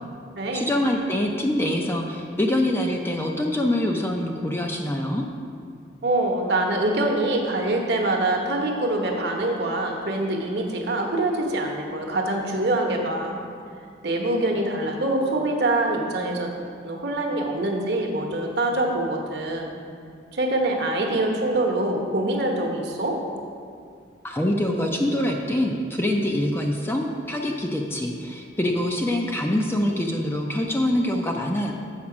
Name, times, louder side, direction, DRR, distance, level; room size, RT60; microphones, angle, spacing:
voice 1, 0.5-5.2 24.2-31.7, left 1 dB, 10° left, 1 dB, 0.4 m, -25 dB
voice 2, 6.0-13.4 14.0-16.5 16.8-19.8 20.3-23.2, right 2 dB, 55° right, 1 dB, 1.0 m, -24 dB
7.3 x 5.2 x 5.9 m, 2.3 s
head